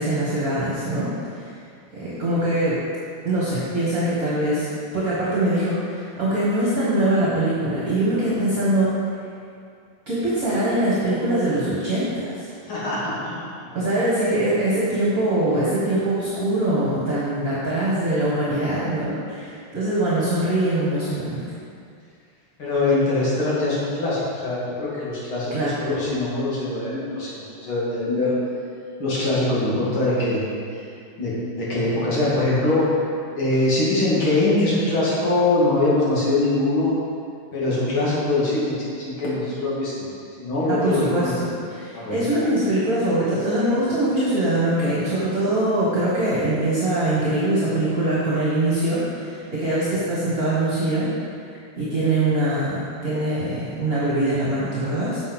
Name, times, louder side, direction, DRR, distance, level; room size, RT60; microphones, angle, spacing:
voice 1, 0.0-1.4 1.9-2.8 3.2-4.7 4.9-8.9 10.1-12.4 13.7-21.4 25.5-25.7 40.7-41.5 41.8-51.1 51.8-55.2, right 1 dB, 45° right, -9 dB, 2.1 m, -23 dB
voice 2, 12.6-13.5 22.6-28.3 29.0-30.4 30.7-30.8 31.2-33.0 33.3-36.9 37.5-40.0 40.4-41.5 41.9-42.2, left 2 dB, 75° left, -8 dB, 3.3 m, -23 dB
8.3 x 7.0 x 5.4 m, 2.3 s
omnidirectional pair, 2.3 m